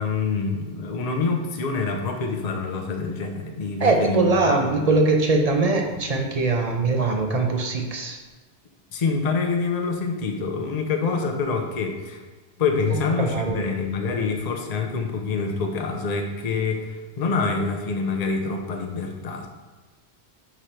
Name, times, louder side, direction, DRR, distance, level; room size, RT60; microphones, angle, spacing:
voice 1, 0.0-4.9 8.9-12.2 12.6-19.5, left 4 dB, 40° left, 3 dB, 0.7 m, -26 dB
voice 2, 3.8-8.2 12.9-13.6 14.0-14.3, right 3 dB, 40° right, 2 dB, 0.7 m, -22 dB
5.2 x 4.8 x 4.4 m, 1.3 s
omnidirectional pair, 1.1 m